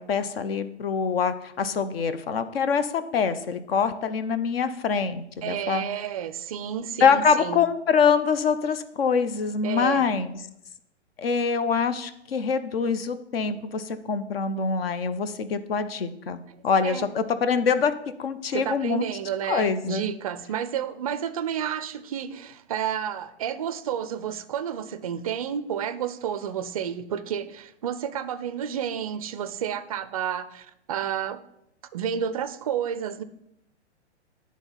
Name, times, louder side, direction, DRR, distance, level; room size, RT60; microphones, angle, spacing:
voice 1, 0.0-5.8 7.0-10.4 11.2-17.9 18.2-19.1 19.5-20.1, left 6 dB, 55° left, 0.7 m, -24 dB
voice 2, 5.4-7.6 9.6-10.1 13.4-13.6 16.8-17.1 18.5-31.4 31.9-33.2, right 9 dB, 35° right, 0.4 m, -31 dB
9.8 x 3.7 x 5.6 m
hypercardioid pair, 140°, 35 cm